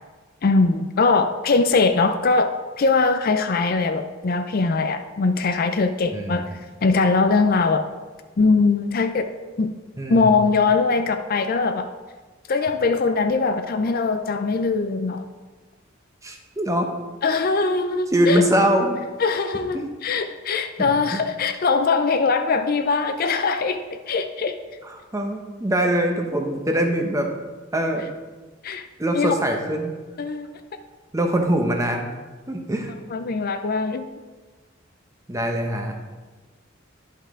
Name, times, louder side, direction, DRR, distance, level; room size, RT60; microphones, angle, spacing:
voice 1, 0.4-7.8 8.4-9.3 9.6-9.7 10.1-11.9 12.5-15.3 17.2-18.5 19.2-24.6 28.6-28.8 29.1-29.3 30.2-30.5 33.1-34.1, left 4 dB, 50° left, 8 dB, 0.5 m, -21 dB
voice 2, 6.1-6.5 10.0-10.3 16.2-16.9 17.6-17.7 18.1-19.0 19.7-19.8 20.8-21.2 24.8-27.3 27.7-28.0 29.0-29.9 31.1-32.1 32.5-32.9 35.3-35.9, right 1 dB, 15° right, 3 dB, 0.9 m, -23 dB
11.0 x 5.6 x 3.7 m, 1.3 s
head